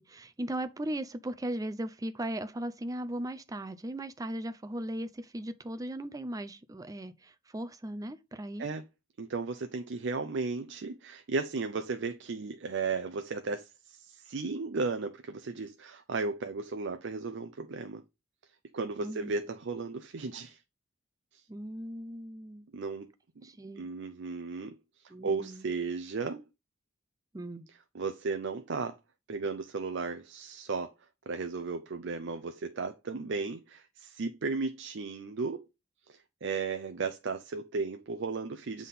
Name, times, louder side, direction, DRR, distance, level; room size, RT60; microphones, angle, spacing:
voice 1, 0.0-8.7 19.0-19.3 21.5-22.7 23.4-23.9 25.1-25.7 27.3-27.6, right 1 dB, 20° right, 0.5 m, -38 dB
voice 2, 9.2-18.0 18.7-20.6 21.3-21.4 22.7-23.1 23.8-24.8 25.0-26.4 27.9-29.0 29.3-30.9 31.3-35.7 36.1-38.9, right 4 dB, 65° right, 0.5 m, -35 dB
7.5 x 3.6 x 4.0 m
head